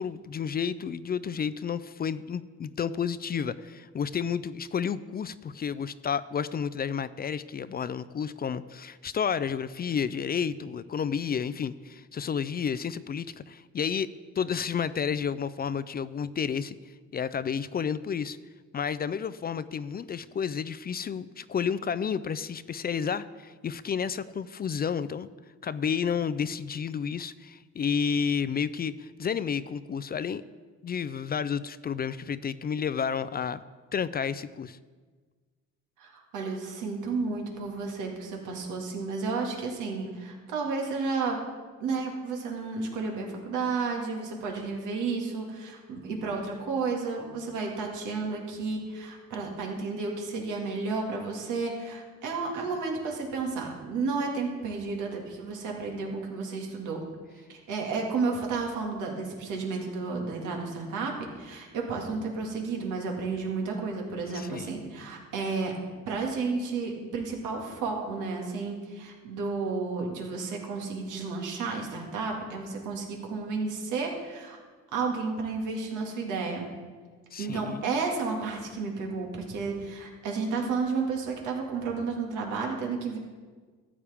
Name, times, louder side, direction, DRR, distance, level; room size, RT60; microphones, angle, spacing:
voice 1, 0.0-14.1 14.4-16.8 17.1-18.4 18.7-25.3 25.6-30.4 30.8-33.6 33.9-34.8 64.3-64.7 77.3-77.8, left 7 dB, 30° left, 15 dB, 0.4 m, -31 dB
voice 2, 36.0-41.4 41.8-57.0 57.5-65.7 66.1-74.6 74.9-76.7 77.4-83.2, right 4 dB, 90° right, 0 dB, 2.1 m, -32 dB
13.5 x 8.5 x 3.5 m, 1.4 s
cardioid pair, 90°, 30 cm